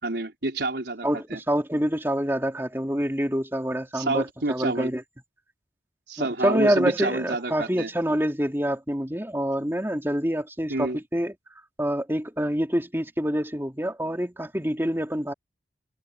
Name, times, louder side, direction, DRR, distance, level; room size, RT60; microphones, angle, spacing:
voice 1, 0.0-1.4 3.9-4.9 6.1-7.9 10.7-11.0, right 2 dB, 75° right, 3.9 m, -28 dB
voice 2, 1.0-5.0 6.2-11.3 11.8-15.3, equal, 15° right, 3.3 m, -26 dB
head